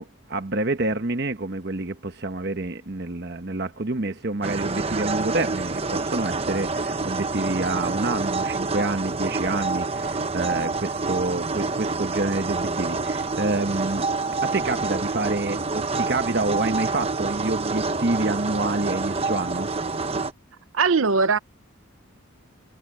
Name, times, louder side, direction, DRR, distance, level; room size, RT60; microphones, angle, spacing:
voice 1, 0.0-14.1 14.4-19.7, right 2 dB, 50° right, 1.1 m, -27 dB
sound 1, 4.4-20.3, right 3 dB, 30° right, 0.9 m, -27 dB
voice 2, 20.7-21.4, right 4 dB, 80° right, 0.8 m, -19 dB
head